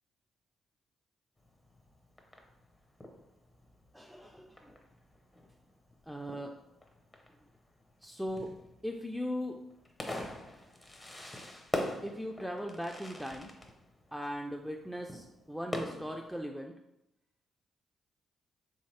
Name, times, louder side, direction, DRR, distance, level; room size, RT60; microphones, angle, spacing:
Fireworks, 1.4-16.4, left 1 dB, 20° left, 0.7 m, -44 dB
voice 1, 3.9-4.8 6.1-6.5 8.0-8.5 8.8-9.6 12.0-13.5 14.1-16.7, equal, ahead, 2 dB, 0.3 m, -39 dB
3.5 x 2.7 x 3.2 m, 0.86 s
supercardioid pair, 55°, 0 cm